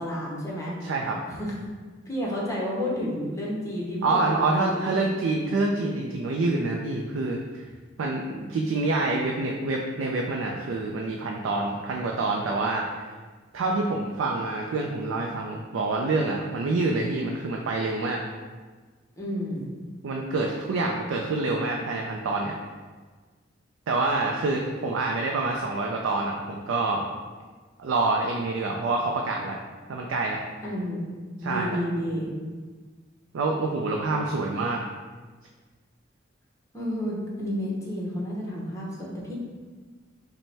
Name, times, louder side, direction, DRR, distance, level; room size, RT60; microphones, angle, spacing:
voice 1, 0.0-0.8 1.2-1.5 2.1-5.0 19.2-19.7 30.6-31.1 31.4-32.3 36.7-39.3, equal, 15° left, -4 dB, 0.8 m, -31 dB
voice 2, 0.8-1.2 4.0-7.6 8.0-13.1 13.5-18.2 20.0-22.5 23.9-27.0 27.8-29.6 29.9-30.4 31.4-31.8 33.3-34.8, right 3 dB, 90° right, 0 dB, 0.4 m, -27 dB
5.3 x 2.1 x 3.3 m, 1.4 s
head